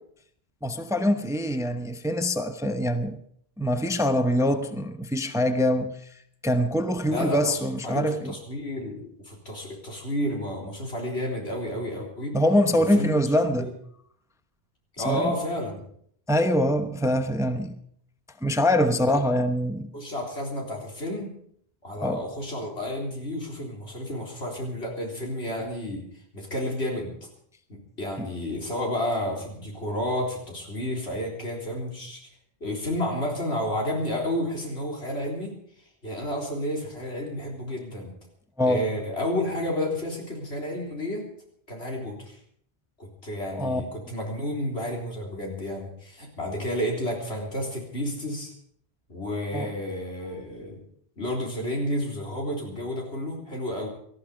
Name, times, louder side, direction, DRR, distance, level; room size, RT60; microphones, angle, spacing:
voice 1, 0.6-3.2 3.6-6.1 6.4-8.3 12.3-13.7 15.0-15.3 16.3-17.8 18.4-19.9 22.0-22.2 28.2-28.3 38.6-38.9 43.5-43.8 49.5-49.7, equal, 5° right, 0.8 m, -24 dB
voice 2, 7.1-12.4 12.8-13.1 13.5-13.7 15.0-15.8 19.0-19.1 19.9-21.3 21.8-26.0 26.3-27.1 27.7-32.2 32.6-35.5 36.0-38.1 38.6-41.2 41.7-42.4 43.0-48.5 49.1-50.8 51.2-53.9, left 1 dB, 80° left, 4.1 m, -31 dB
18.5 x 13.5 x 5.0 m
omnidirectional pair, 1.1 m